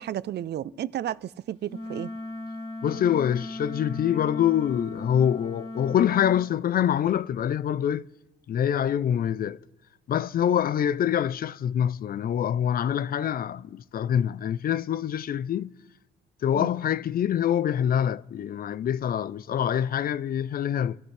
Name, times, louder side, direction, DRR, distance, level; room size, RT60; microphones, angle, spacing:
voice 1, 0.0-2.1 16.5-16.7, right 11 dB, 60° right, 0.5 m, -32 dB
Wind instrument woodwind instrument, 1.7-6.5, left 2 dB, 25° left, 2.4 m, -37 dB
voice 2, 2.8-8.1 8.5-9.6 10.1-15.7 16.4-21.0, left 9 dB, 50° left, 0.4 m, -25 dB
28.5 x 13.0 x 3.3 m
cardioid pair, 90°, 20 cm